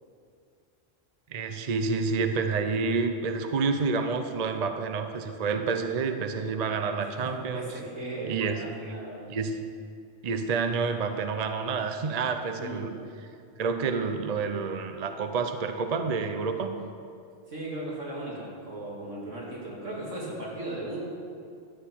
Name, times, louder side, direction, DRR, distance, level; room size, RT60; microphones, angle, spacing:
voice 1, 1.3-7.7 8.2-8.6 9.3-9.6 10.2-12.9 13.6-16.7, right 4 dB, 40° right, 6 dB, 0.6 m, -29 dB
voice 2, 7.0-9.3 12.6-12.9 17.5-21.2, right 2 dB, 75° right, -5 dB, 3.0 m, -37 dB
13.5 x 9.2 x 4.6 m, 2.4 s
omnidirectional pair, 1.3 m